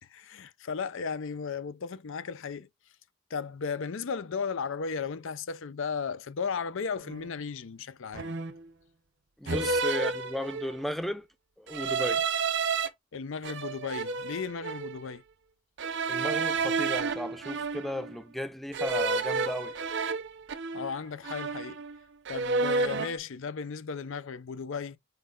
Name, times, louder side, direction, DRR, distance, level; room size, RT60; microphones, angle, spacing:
voice 1, 0.1-2.7 3.3-8.3 9.4-9.7 13.1-15.2 20.7-21.8 22.3-25.0, left 5 dB, 65° left, 0.5 m, -35 dB
sound 1, 7.0-7.3 8.1-8.7 9.5-10.9 11.7-12.9 13.4-15.0 15.8-18.1 18.7-21.0 21.2-22.0 22.2-23.2, right 4 dB, 55° right, 0.6 m, -31 dB
voice 2, 9.4-11.3 11.6-12.3 16.1-19.7, left 1 dB, ahead, 0.4 m, -35 dB
5.3 x 3.9 x 2.4 m
head